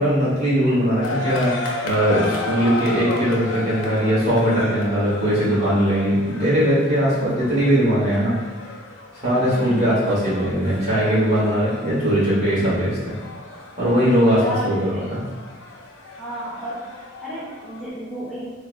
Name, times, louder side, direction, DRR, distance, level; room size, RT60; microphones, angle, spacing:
voice 1, 0.0-1.5 1.8-8.4 9.2-13.1 13.8-15.2, equal, 35° right, -11 dB, 1.4 m, -20 dB
sound 1, 1.0-17.9, left 2 dB, 80° left, 0.5 m, -34 dB
voice 2, 9.5-9.9 14.4-15.0 16.2-16.9 17.2-18.4, equal, ahead, -11 dB, 0.5 m, -31 dB
3.3 x 2.1 x 3.2 m, 1.3 s
head